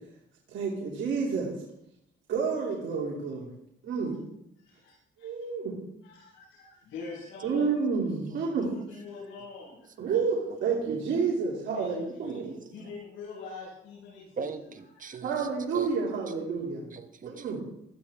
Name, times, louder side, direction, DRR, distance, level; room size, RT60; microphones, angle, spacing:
voice 1, 0.5-1.5 2.3-3.4 3.8-4.2 5.2-5.8 7.4-8.7 10.0-12.5 15.2-16.8 17.2-17.6, right 5 dB, 70° right, -4 dB, 3.0 m, -29 dB
voice 2, 4.6-5.4 6.0-7.6 8.6-9.9 11.7-14.8 15.1-15.2, left 4 dB, 85° left, -8 dB, 5.8 m, -44 dB
voice 3, 14.4-15.5 15.7-15.9 16.9-17.6, right 5 dB, 40° right, 9 dB, 1.3 m, -40 dB
16.5 x 12.5 x 3.6 m, 0.76 s
cardioid pair, 90°, 20 cm